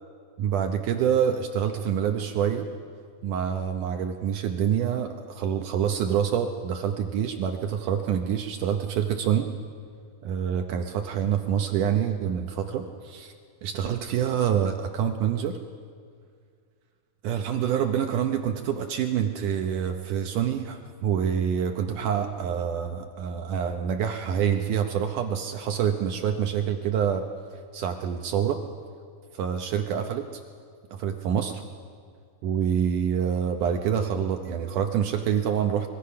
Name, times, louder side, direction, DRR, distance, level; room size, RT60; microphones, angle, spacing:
voice 1, 0.4-2.7 3.2-9.5 10.2-13.3 13.6-15.5 17.2-27.2 27.7-28.6 29.3-30.3 30.9-31.6 32.4-35.9, right 8 dB, 80° right, 5 dB, 1.8 m, -26 dB
24.0 x 22.0 x 5.7 m, 2.1 s
omnidirectional pair, 4.7 m